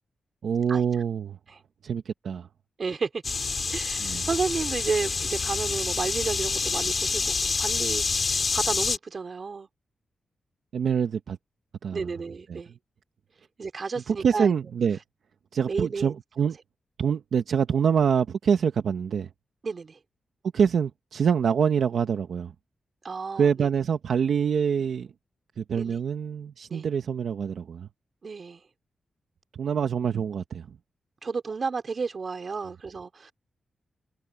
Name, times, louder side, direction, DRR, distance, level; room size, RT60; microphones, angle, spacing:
voice 1, 0.4-1.4 1.8-2.5 4.0-4.3 10.7-11.4 11.8-12.1 12.5-12.6 14.1-15.0 15.5-16.6 17.0-19.3 20.5-22.5 23.4-25.1 25.6-27.9 29.5-30.8, right 7 dB, 70° right, 1.1 m, -25 dB
voice 2, 2.8-3.2 3.7-9.7 11.9-12.7 13.6-14.5 15.7-16.1 19.6-20.0 23.0-23.7 25.8-26.0 26.7-26.9 28.2-28.6 31.2-33.3, right 4 dB, 45° right, 3.4 m, -32 dB
sound 1, 3.2-9.0, left 4 dB, 40° left, 3.1 m, -27 dB
wide cardioid pair, 130°, 0 cm